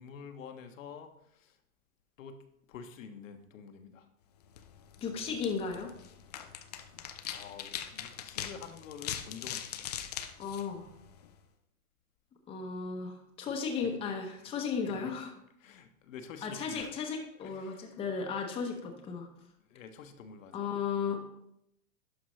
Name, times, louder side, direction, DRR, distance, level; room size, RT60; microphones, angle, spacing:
voice 1, 0.0-1.6 2.2-2.4 2.7-4.1 7.3-9.9 14.4-14.5 14.8-15.1 15.6-16.9 17.4-17.9 19.6-20.6, left 6 dB, 60° left, 7 dB, 1.0 m, -48 dB
sound 1, 4.4-11.4, left 10 dB, 30° left, 0.3 m, -42 dB
voice 2, 5.0-5.9 10.4-10.9 12.5-15.3 16.4-19.3 20.5-21.2, left 5 dB, 15° left, 2 dB, 0.8 m, -35 dB
11.5 x 5.2 x 3.1 m, 0.77 s
hypercardioid pair, 130°, 45 cm